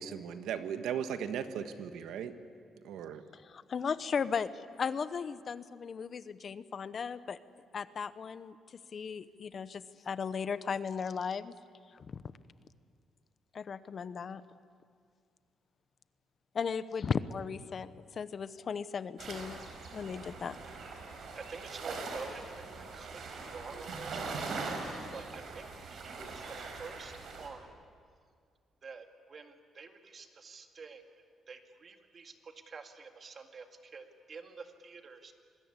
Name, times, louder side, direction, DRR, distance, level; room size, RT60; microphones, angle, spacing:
voice 1, 0.0-2.3 2.8-3.2, right 8 dB, 85° right, 9 dB, 1.5 m, -37 dB
voice 2, 3.3-7.4 7.7-11.5 11.9-12.2 13.5-14.4 16.5-19.6 19.9-20.6, left 6 dB, 40° left, 14 dB, 0.8 m, -36 dB
sound 1, 19.2-27.5, right 3 dB, 60° right, 4.6 m, -41 dB
voice 3, 21.3-24.2 25.1-27.7 28.8-35.3, right 4 dB, 35° right, 5 dB, 2.2 m, -48 dB
26.5 x 21.0 x 9.8 m, 2.1 s
cardioid pair, 140°, 0 cm